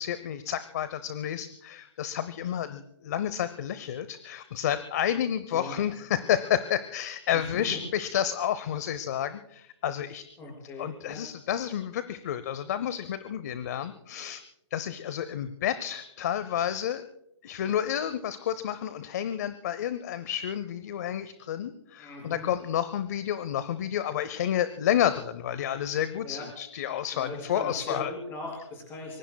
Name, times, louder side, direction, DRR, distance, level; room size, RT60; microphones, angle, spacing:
voice 1, 0.0-10.2 10.8-14.4 14.7-17.0 17.4-28.1, left 10 dB, 35° left, 14 dB, 0.7 m, -30 dB
voice 2, 7.3-7.7 10.4-11.3 22.0-22.5 26.2-26.5 27.1-29.2, left 2 dB, 15° left, 1 dB, 5.7 m, -39 dB
25.0 x 22.5 x 2.3 m, 0.81 s
hypercardioid pair, 170°, 16 cm